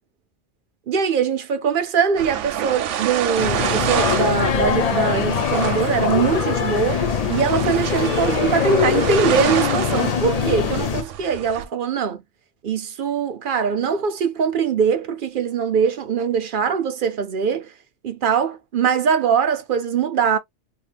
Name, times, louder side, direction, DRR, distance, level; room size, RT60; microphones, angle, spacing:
voice 1, 0.9-12.2 12.6-17.7 18.0-20.4, right 6 dB, 55° right, 0.7 m, -22 dB
sound 1, 2.2-11.7, right 9 dB, 85° right, 0.9 m, -28 dB
sound 2, 3.4-11.0, left 7 dB, 55° left, 0.4 m, -22 dB
3.1 x 2.2 x 3.2 m
omnidirectional pair, 1.2 m